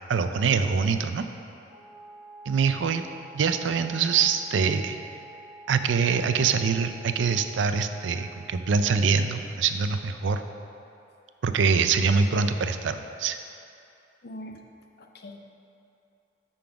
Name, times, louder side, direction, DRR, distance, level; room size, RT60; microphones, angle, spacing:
voice 1, 0.1-1.2 2.5-3.0 3.3-5.0 5.7-10.4 11.4-13.4, right 5 dB, 85° right, 9 dB, 0.4 m, -24 dB
Wind instrument woodwind instrument, 1.7-9.1, right 2 dB, 35° right, 1.2 m, -48 dB
voice 2, 14.2-14.6 15.0-15.5, left 1 dB, 60° left, 4 dB, 0.6 m, -42 dB
8.6 x 3.9 x 5.8 m, 2.7 s
head